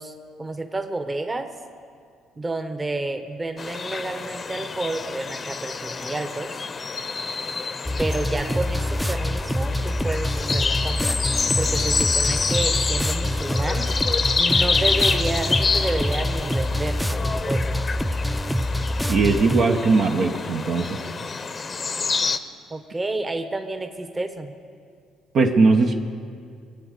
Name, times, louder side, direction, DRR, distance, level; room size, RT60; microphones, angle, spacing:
voice 1, 0.0-1.5 2.4-6.6 8.0-11.2 11.6-13.9 14.4-17.9 22.7-24.5, right 2 dB, 25° right, 7 dB, 1.3 m, -30 dB
sound 1, 3.6-22.4, left 4 dB, 35° left, 0.8 m, -27 dB
sound 2, 7.9-19.6, left 1 dB, ahead, 0.6 m, -25 dB
voice 2, 19.1-21.0 25.3-25.9, right 3 dB, 60° right, 3 dB, 1.1 m, -19 dB
22.0 x 8.3 x 6.7 m, 2.2 s
supercardioid pair, 70°, 0 cm